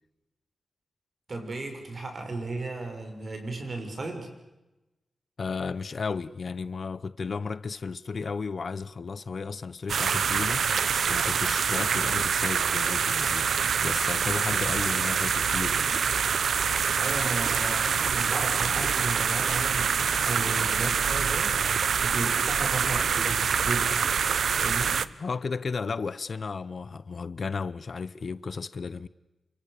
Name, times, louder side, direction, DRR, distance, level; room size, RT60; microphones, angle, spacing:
voice 1, 1.3-4.3 17.0-24.1 24.6-25.0, right 3 dB, 45° right, 6.4 m, -34 dB
voice 2, 5.4-10.7 11.1-13.5 13.8-15.9 25.2-29.1, left 5 dB, 55° left, 0.8 m, -34 dB
sound 1, 9.9-25.1, right 6 dB, 85° right, 0.9 m, -25 dB
28.0 x 26.0 x 6.8 m
wide cardioid pair, 110°, 0 cm